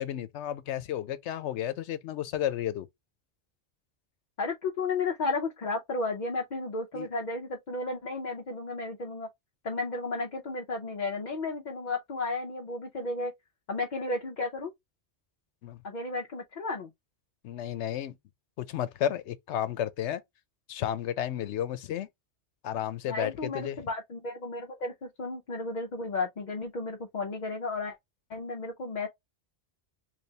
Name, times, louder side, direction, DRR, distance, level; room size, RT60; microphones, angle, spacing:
voice 1, 0.0-2.9 6.9-7.1 15.6-15.8 17.4-18.1 18.6-20.2 20.7-22.1 22.6-23.8, left 11 dB, 90° left, 0.9 m, -32 dB
voice 2, 4.4-9.3 9.6-13.3 13.7-14.7 15.8-16.9 23.1-27.9 28.3-29.1, left 3 dB, 50° left, 0.7 m, -33 dB
3.3 x 3.2 x 2.8 m
omnidirectional pair, 1.1 m